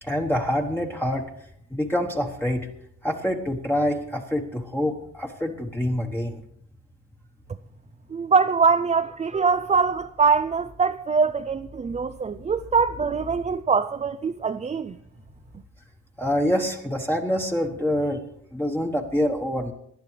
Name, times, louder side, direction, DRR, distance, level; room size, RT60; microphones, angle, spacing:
voice 1, 0.0-1.3 1.7-2.7 3.0-6.4 16.2-18.2 18.5-19.7, equal, 5° left, 1.2 m, -26 dB
voice 2, 8.1-15.0, right 5 dB, 25° right, 0.4 m, -23 dB
18.5 x 10.5 x 3.3 m
cardioid pair, 90°, 30 cm